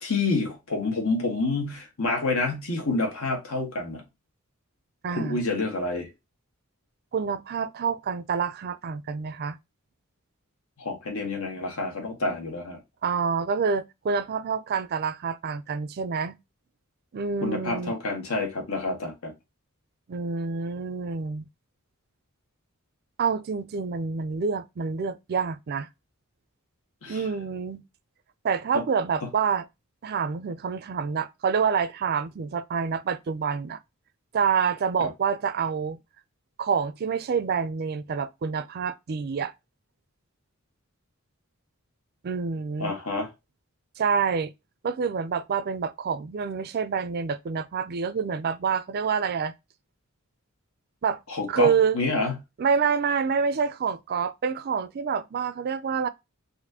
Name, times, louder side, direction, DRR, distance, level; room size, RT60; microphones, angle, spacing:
voice 1, 0.0-4.0 5.1-6.1 10.8-12.8 17.4-19.3 27.0-27.2 35.0-35.1 42.8-43.3 51.3-52.3, left 3 dB, 85° left, 1.4 m, -28 dB
voice 2, 5.0-5.4 7.1-9.6 13.0-16.4 17.1-17.9 20.1-21.5 23.2-25.9 27.1-27.8 28.4-29.7 30.0-33.8 34.3-36.0 36.6-39.5 42.2-42.9 44.0-44.5 44.8-49.5 51.0-51.2 51.5-52.0 52.6-56.1, right 6 dB, 45° right, 0.4 m, -27 dB
4.2 x 2.5 x 2.7 m
head